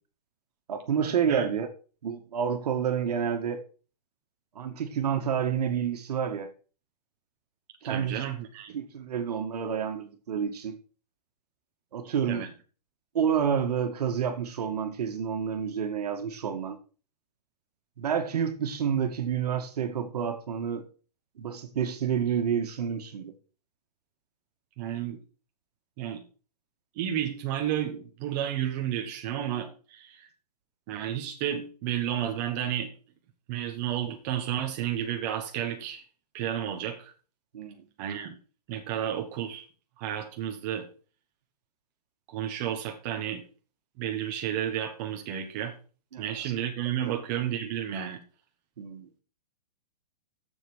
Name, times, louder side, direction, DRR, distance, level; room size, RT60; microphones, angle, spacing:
voice 1, 0.7-1.7 2.0-3.6 4.6-6.5 7.8-8.2 8.7-10.8 11.9-12.5 13.1-16.8 18.0-20.8 21.4-23.3 37.5-37.8 46.1-46.5 48.8-49.1, right 7 dB, 70° right, 2.0 m, -29 dB
voice 2, 7.8-8.7 12.3-12.5 24.8-25.2 26.0-26.2 27.0-30.3 30.9-32.9 33.5-36.0 36.3-37.1 38.0-38.4 38.7-39.6 40.0-40.9 42.3-43.4 44.0-45.7 46.2-48.2, right 10 dB, 25° right, 1.2 m, -32 dB
8.3 x 7.2 x 6.3 m
hypercardioid pair, 170°, 21 cm